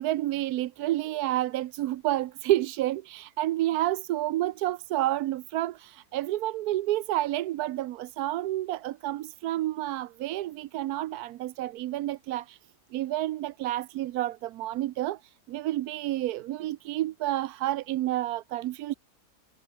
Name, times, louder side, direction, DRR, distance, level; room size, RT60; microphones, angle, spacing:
voice 1, 0.0-12.6 12.9-18.9, right 14 dB, 75° right, 1.1 m, -30 dB
omnidirectional pair, 1.7 m